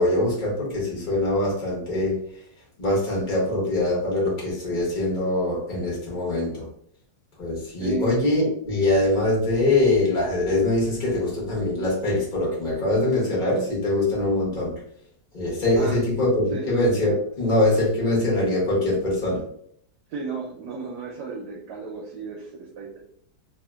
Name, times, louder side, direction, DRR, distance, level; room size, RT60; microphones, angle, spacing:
voice 1, 0.0-2.2 2.8-6.6 7.4-14.8 15.3-19.4, left 2 dB, 40° left, -4 dB, 0.7 m, -23 dB
voice 2, 20.1-23.0, right 5 dB, 75° right, -2 dB, 1.1 m, -34 dB
2.8 x 2.8 x 2.2 m, 0.65 s
omnidirectional pair, 2.1 m